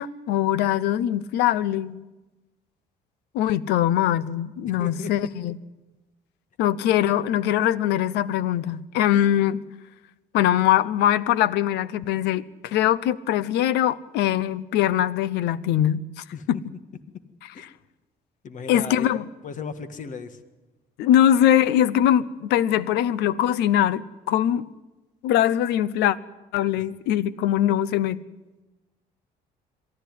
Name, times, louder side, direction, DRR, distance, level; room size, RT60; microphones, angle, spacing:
voice 1, 0.0-2.0 3.3-5.6 6.6-9.6 10.3-16.6 18.7-19.2 21.0-24.7 25.2-26.2 26.5-28.2, left 11 dB, 85° left, 0.8 m, -22 dB
voice 2, 4.6-5.1 9.1-9.3 16.3-16.5 17.5-17.6 18.4-20.4 26.8-26.9, left 5 dB, 50° left, 1.8 m, -36 dB
23.0 x 13.5 x 9.4 m
cardioid pair, 110°, 17 cm